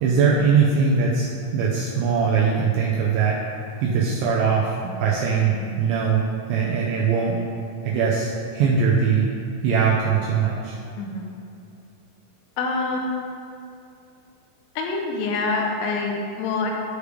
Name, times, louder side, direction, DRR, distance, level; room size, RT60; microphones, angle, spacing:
voice 1, 0.0-3.4 3.8-7.4 7.8-9.3 9.6-10.8, right 6 dB, 90° right, -4 dB, 2.6 m, -21 dB
voice 2, 12.6-13.3 14.8-16.8, left 3 dB, 85° left, 1 dB, 3.4 m, -26 dB
12.5 x 5.0 x 3.3 m, 2.6 s
omnidirectional pair, 5.9 m